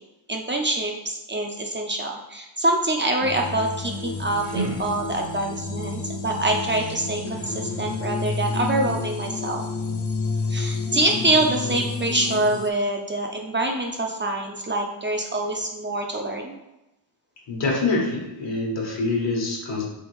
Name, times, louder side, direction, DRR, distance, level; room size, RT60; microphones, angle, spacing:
voice 1, 0.3-9.6 10.5-16.6, right 2 dB, 25° right, 1 dB, 0.5 m, -25 dB
sound 1, 3.2-12.7, left 4 dB, 35° left, 0.4 m, -30 dB
sound 2, 3.9-5.6, right 2 dB, 75° right, 0.9 m, -33 dB
voice 2, 17.5-19.8, left 3 dB, 70° left, -1 dB, 1.2 m, -25 dB
3.5 x 2.9 x 3.1 m, 0.93 s
cardioid pair, 50°, 45 cm